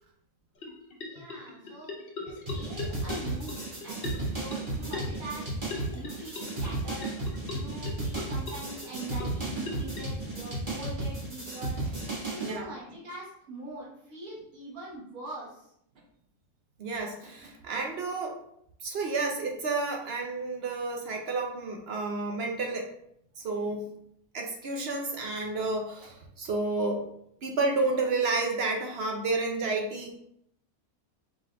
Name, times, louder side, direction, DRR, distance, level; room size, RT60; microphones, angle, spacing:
sound 1, 0.6-10.0, left 3 dB, 50° left, 0.9 m, -42 dB
voice 1, 1.0-5.5 5.9-7.1 7.5-11.8 12.3-15.7, right 2 dB, 80° right, -5 dB, 1.6 m, -43 dB
sound 2, 2.5-12.6, right 2 dB, 35° right, 1.6 m, -34 dB
voice 2, 16.8-18.4 18.8-22.9 23.4-23.9 24.3-27.1 27.4-30.2, right 3 dB, 60° right, 2 dB, 0.7 m, -30 dB
4.9 x 3.7 x 2.2 m, 0.72 s
omnidirectional pair, 1.5 m